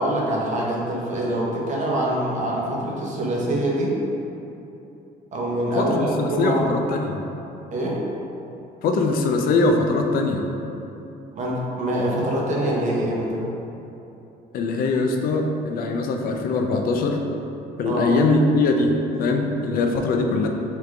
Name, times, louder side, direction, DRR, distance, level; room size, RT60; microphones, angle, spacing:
voice 1, 0.0-4.0 5.3-6.7 7.7-8.0 11.4-13.4 17.8-18.1, right 1 dB, 45° right, -3 dB, 0.8 m, -24 dB
voice 2, 5.8-7.2 8.8-10.5 14.5-17.2 17.8-20.5, left 3 dB, 60° left, 3 dB, 0.5 m, -22 dB
3.3 x 3.2 x 3.7 m, 2.9 s
cardioid pair, 110°, 17 cm